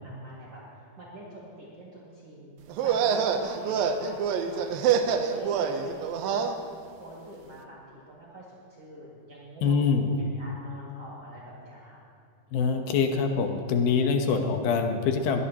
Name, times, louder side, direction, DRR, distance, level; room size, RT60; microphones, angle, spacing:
voice 1, 0.0-2.6 2.8-4.8 5.2-6.5 7.0-12.0, right 1 dB, 45° right, -6 dB, 2.9 m, -45 dB
sound 1, 2.7-6.5, right 7 dB, 80° right, 2.5 m, -26 dB
voice 2, 9.6-10.1 12.5-15.4, left 5 dB, 80° left, 5 dB, 2.9 m, -24 dB
22.5 x 17.5 x 3.0 m, 2.4 s
omnidirectional pair, 4.2 m